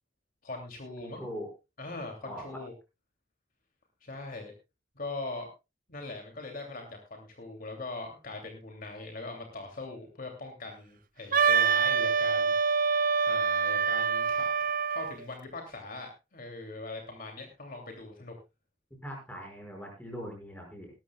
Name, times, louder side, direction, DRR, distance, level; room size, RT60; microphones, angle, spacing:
voice 1, 0.4-1.2 1.8-2.7 4.0-4.5 5.0-5.5 5.9-12.5 13.3-18.3, left 2 dB, 45° left, 3 dB, 2.7 m, -41 dB
voice 2, 1.0-1.5 2.2-2.6 19.0-20.9, equal, 10° left, 1 dB, 5.7 m, -41 dB
Wind instrument woodwind instrument, 11.3-15.2, right 6 dB, 40° right, 0.6 m, -26 dB
19.5 x 13.0 x 2.3 m, 0.27 s
head